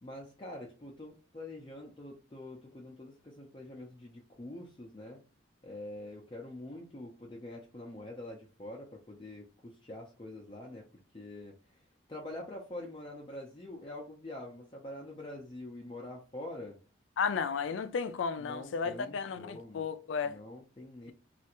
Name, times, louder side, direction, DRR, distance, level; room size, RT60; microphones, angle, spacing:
voice 1, 0.0-5.2 5.6-10.9 11.1-11.8 12.1-16.8 18.4-19.9 20.2-21.1, left 1 dB, 25° left, 0.5 m, -45 dB
voice 2, 17.2-20.4, left 5 dB, 85° left, 0.4 m, -33 dB
3.3 x 2.4 x 2.9 m
head